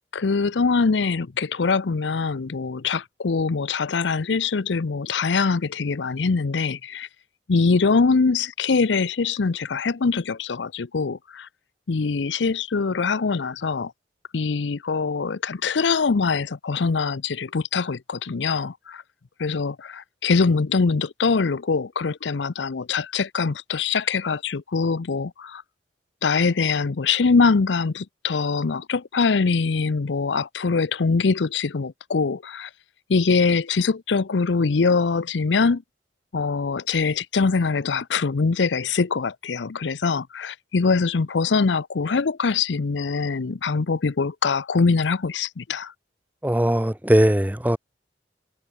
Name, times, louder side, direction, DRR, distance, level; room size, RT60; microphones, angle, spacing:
voice 1, 0.1-7.1 7.5-11.5 11.9-13.9 14.3-19.0 19.4-25.6 26.2-32.7 33.1-35.8 36.3-45.9, left 4 dB, 85° left, 0.6 m, -23 dB
voice 2, 46.4-47.8, equal, 10° right, 1.0 m, -19 dB
head